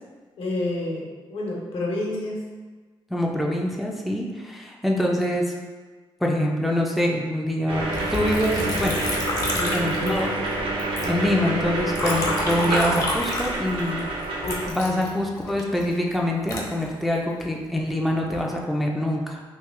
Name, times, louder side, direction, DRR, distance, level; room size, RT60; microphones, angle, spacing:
voice 1, 0.4-2.4 9.5-9.9 14.4-14.6 14.9-15.0, left 2 dB, 80° left, -2 dB, 0.9 m, -29 dB
voice 2, 3.1-5.4 6.2-7.8 8.1-9.0 9.7-10.3 11.0-14.1 14.7-19.4, left 1 dB, ahead, -1 dB, 0.3 m, -25 dB
sound 1, 7.7-14.7, right 2 dB, 70° right, 0.6 m, -27 dB
Liquid, 7.9-10.5 10.8-14.0 14.4-17.5 18.0-18.6, left 2 dB, 40° left, 0.6 m, -30 dB
3.2 x 2.6 x 3.5 m, 1.4 s
wide cardioid pair, 150°, 9 cm